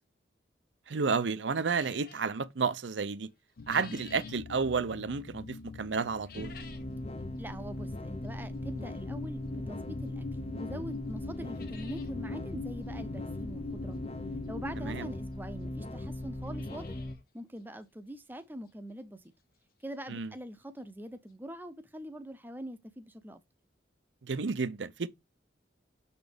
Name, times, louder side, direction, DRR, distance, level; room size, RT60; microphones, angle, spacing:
voice 1, 0.9-3.3 3.7-6.5 14.8-15.1 20.1-20.3 24.2-25.1, right 5 dB, 75° right, 0.6 m, -31 dB
sound 1, 1.7-2.3 3.3-4.4 6.1-6.9 7.4-7.5 8.3-8.4 10.1-10.2 10.6-10.7 10.9-11.0 11.3-12.1 12.5-12.6 12.8-12.9 14.4-14.5 15.3-15.4 15.6-15.7 16.2-17.2 17.6-17.7 18.2-18.3 18.7-18.8 20.5-20.6 20.8-20.9 21.3-21.4, left 6 dB, 50° left, 1.3 m, -53 dB
sound 2, 3.6-15.1, left 4 dB, 75° left, 0.7 m, -43 dB
sound 3, 6.3-17.2, left 1 dB, 35° left, 0.6 m, -39 dB
voice 2, 7.4-10.3 10.6-14.0 14.5-17.0 17.3-19.2 19.8-23.4, equal, 10° right, 0.7 m, -43 dB
6.9 x 4.2 x 5.0 m
head